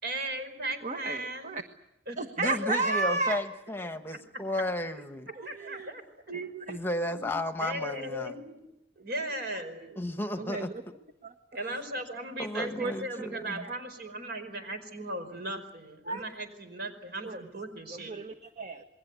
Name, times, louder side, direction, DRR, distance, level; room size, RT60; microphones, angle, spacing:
voice 1, 0.0-1.5 2.1-3.2 5.4-6.0 7.1-7.3 7.6-8.6 9.0-10.0 11.5-18.2, right 1 dB, 60° right, 8 dB, 4.9 m, -37 dB
voice 2, 0.8-1.6 2.2-3.4 5.4-5.9 6.3-6.8 10.4-10.7 11.2-11.3 12.8-12.9 13.2-13.3 13.6-13.7 16.0-16.2 17.2-17.4 17.9-18.8, right 3 dB, 40° right, 6 dB, 1.3 m, -33 dB
voice 3, 2.4-5.3 6.7-8.4 10.0-10.9 11.7-11.8 12.4-13.7, left 1 dB, 10° left, 8 dB, 1.2 m, -33 dB
28.5 x 21.5 x 8.2 m, 0.89 s
head